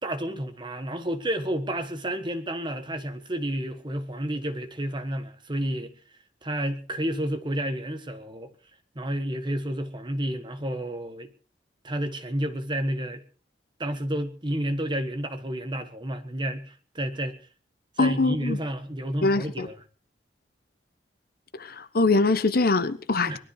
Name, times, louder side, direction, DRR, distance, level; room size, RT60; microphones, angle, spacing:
voice 1, 0.0-5.9 6.4-8.5 8.9-11.3 11.8-13.2 13.8-17.3 18.0-19.8 23.2-23.4, right 1 dB, 25° right, 9 dB, 1.5 m, -30 dB
voice 2, 18.0-18.6 19.2-19.7 21.6-23.4, left 3 dB, 55° left, 13 dB, 1.0 m, -23 dB
20.0 x 13.0 x 4.8 m, 0.39 s
head